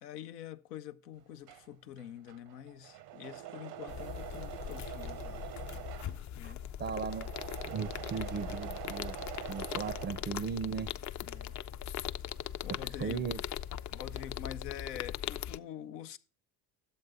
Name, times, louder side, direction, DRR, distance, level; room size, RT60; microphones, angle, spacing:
voice 1, 0.0-5.4 6.4-6.7 11.2-11.6 12.6-13.3 13.9-16.2, left 10 dB, 90° left, 0.6 m, -46 dB
Engine / Mechanisms, 1.2-10.8 11.2-13.5 13.8-14.5, right 11 dB, 80° right, 0.9 m, -46 dB
sound 1, 3.9-15.6, left 10 dB, 40° left, 0.5 m, -40 dB
voice 2, 6.4-7.3 7.7-9.2 9.5-10.9 12.7-13.4, right 6 dB, 25° right, 0.4 m, -37 dB
10.5 x 7.9 x 3.6 m
hypercardioid pair, 60°, 47 cm